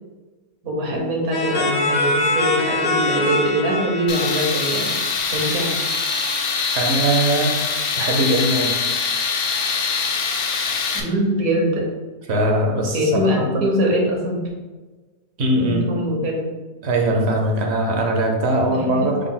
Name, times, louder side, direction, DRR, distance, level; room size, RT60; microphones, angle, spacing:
voice 1, 0.6-4.9 5.3-5.7 10.9-11.9 12.9-14.4 15.6-16.5 18.9-19.1, equal, 70° right, 0 dB, 1.4 m, -22 dB
sound 1, 1.3-5.9, left 2 dB, 80° left, 1.7 m, -24 dB
Tools, 4.1-11.0, left 5 dB, 65° left, 0.6 m, -23 dB
voice 2, 6.7-7.6 8.0-8.8 12.3-13.2 13.5-13.6 15.4-15.9 16.8-19.3, right 1 dB, 55° right, 1 dB, 0.9 m, -20 dB
6.3 x 2.2 x 3.8 m, 1.3 s
omnidirectional pair, 1.5 m